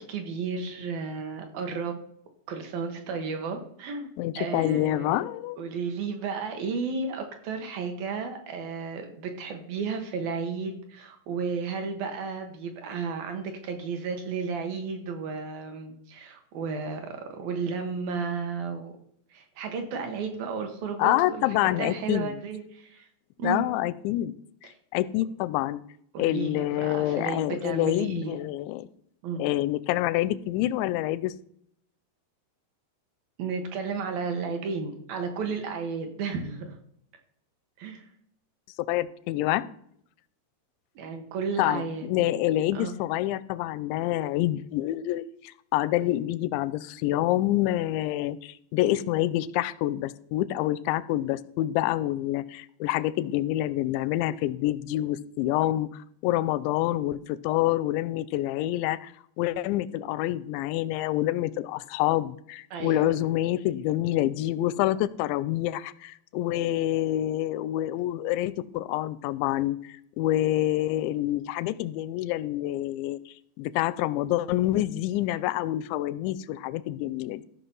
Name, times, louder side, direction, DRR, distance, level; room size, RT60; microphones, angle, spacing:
voice 1, 0.0-2.0 2.5-4.1 4.4-5.2 5.6-18.9 19.3-23.1 23.4-23.7 24.6-24.7 26.1-28.4 29.2-29.4 33.4-36.8 37.8-38.1 41.0-42.1 42.7-42.9 62.7-63.1, right 5 dB, 65° right, 5 dB, 2.6 m, -33 dB
voice 2, 4.2-5.6 21.0-22.4 23.4-24.3 24.9-25.8 26.2-28.9 29.4-31.3 38.9-39.7 41.6-45.3 45.7-59.1 59.4-77.4, left 14 dB, 85° left, 17 dB, 2.8 m, -27 dB
14.5 x 5.8 x 5.4 m, 0.68 s
omnidirectional pair, 5.1 m